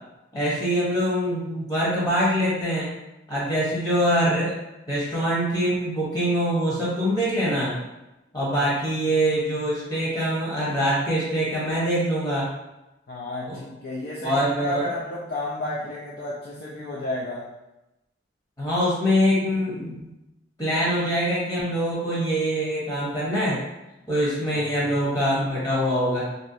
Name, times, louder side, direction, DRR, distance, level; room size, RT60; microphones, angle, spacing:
voice 1, 0.3-2.9 3.3-4.6 4.9-7.7 8.3-12.5 13.5-13.6 14.2-14.9 18.6-20.1 20.6-23.6 24.1-26.3, equal, 20° left, -7 dB, 0.9 m, -24 dB
voice 2, 13.1-17.5 24.5-24.7, left 2 dB, 55° left, -6 dB, 0.5 m, -32 dB
3.1 x 2.7 x 2.6 m, 0.96 s
head